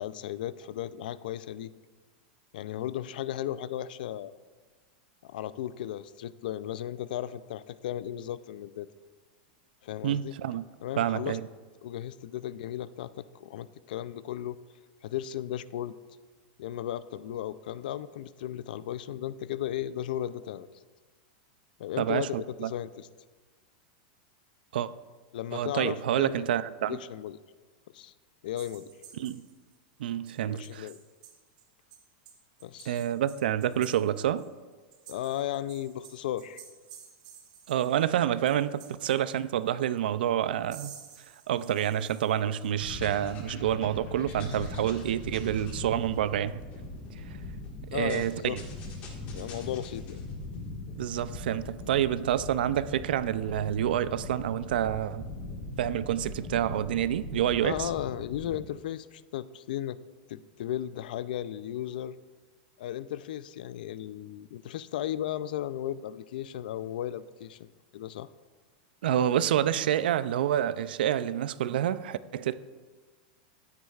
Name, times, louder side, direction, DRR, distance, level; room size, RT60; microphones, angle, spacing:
voice 1, 0.0-1.7 2.5-4.4 5.2-8.9 9.8-10.3 10.8-11.4 11.8-14.6 15.0-15.9 16.6-20.7 21.8-23.1 25.3-26.4 26.9-27.4 27.9-28.1 28.4-28.9 30.4-31.0 32.6-33.0 35.1-36.6 42.4-42.6 47.9-48.6 49.3-50.2 57.6-60.0 60.3-62.2 62.8-68.3, left 11 dB, 70° left, 0.4 m, -35 dB
voice 2, 10.0-10.6 11.0-11.5 22.0-22.7 24.7-24.9 25.5-27.0 29.2-29.4 30.0-30.9 32.9-34.4 37.7-40.9 41.5-46.6 47.9-48.6 51.0-55.3 55.8-57.9 69.0-72.6, right 11 dB, 85° right, 0.4 m, -28 dB
sound 1, 28.6-29.7 30.3-30.4 30.6-31.6 31.9-34.5 34.7-38.1 38.4-39.9 40.6-42.7, right 8 dB, 45° right, 1.4 m, -52 dB
sound 2, 42.8-58.6, left 2 dB, 30° left, 1.7 m, -41 dB
13.5 x 9.4 x 2.4 m
supercardioid pair, 175°, 5 cm